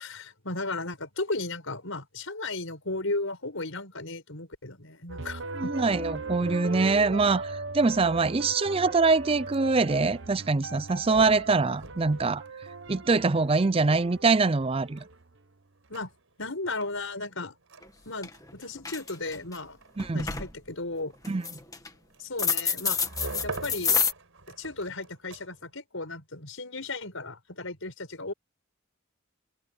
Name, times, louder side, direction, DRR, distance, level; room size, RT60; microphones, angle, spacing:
voice 1, 0.0-5.7 15.9-16.1 16.4-17.6 18.1-19.8 20.1-21.1 22.2-23.0 23.4-24.0 24.6-28.3, left 2 dB, 65° left, 5.9 m, -35 dB
sound 1, 5.1-15.3, right 3 dB, 60° right, 1.2 m, -39 dB
voice 2, 5.6-12.4 12.9-15.0 20.0-20.3 21.3-21.5, right 3 dB, 25° right, 0.4 m, -24 dB
sound 2, 9.2-25.8, right 2 dB, 75° right, 4.6 m, -47 dB
sound 3, 17.8-17.9 18.2-18.5 18.8-19.6 20.0-20.5 21.2-21.9 22.4-24.1, left 6 dB, 15° left, 1.7 m, -27 dB
head